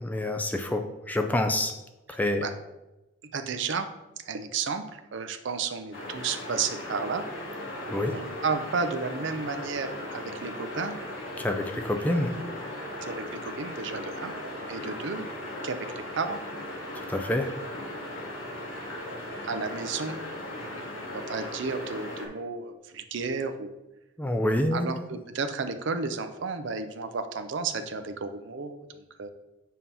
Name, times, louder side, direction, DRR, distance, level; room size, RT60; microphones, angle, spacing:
voice 1, 0.0-1.7 2.1-2.5 7.9-8.1 11.4-12.4 16.9-17.5 24.2-24.9, left 1 dB, 10° left, 5 dB, 0.3 m, -27 dB
voice 2, 3.3-3.9 4.2-7.3 8.1-11.0 13.0-14.4 14.7-15.3 15.6-15.9 16.1-16.4 19.4-23.7 24.7-29.3, right 4 dB, 70° right, 8 dB, 0.5 m, -32 dB
sound 1, 5.9-22.3, left 1 dB, 85° left, 1.3 m, -37 dB
7.4 x 2.8 x 5.4 m, 1.0 s
head